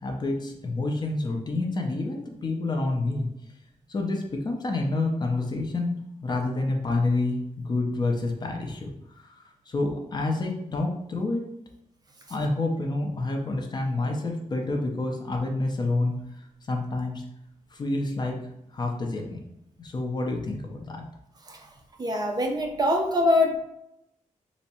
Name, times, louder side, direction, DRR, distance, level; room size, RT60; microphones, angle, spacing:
voice 1, 0.0-3.3 3.9-11.5 12.3-16.1 16.7-17.2 17.7-18.4 18.7-19.4 19.8-21.0, left 2 dB, 35° left, 2 dB, 0.5 m, -28 dB
voice 2, 22.0-23.6, left 1 dB, 30° right, 2 dB, 0.4 m, -23 dB
3.4 x 2.0 x 4.1 m, 0.82 s
wide cardioid pair, 180°, 13 cm